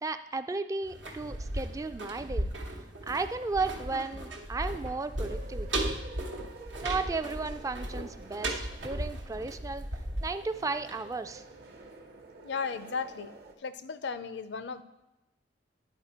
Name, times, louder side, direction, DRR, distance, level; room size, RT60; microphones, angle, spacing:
voice 1, 0.0-2.5 3.1-5.8 6.8-9.9 10.2-11.4, right 3 dB, 20° right, 10 dB, 0.3 m, -34 dB
sound 1, 0.8-11.6 11.9-12.0, right 1 dB, 90° right, 1.1 m, -36 dB
sound 2, 5.2-13.5, right 2 dB, 60° right, 0.9 m, -50 dB
voice 2, 12.4-13.3 13.6-14.8, left 5 dB, 70° left, 13 dB, 0.5 m, -35 dB
10.5 x 4.4 x 4.3 m, 0.99 s
head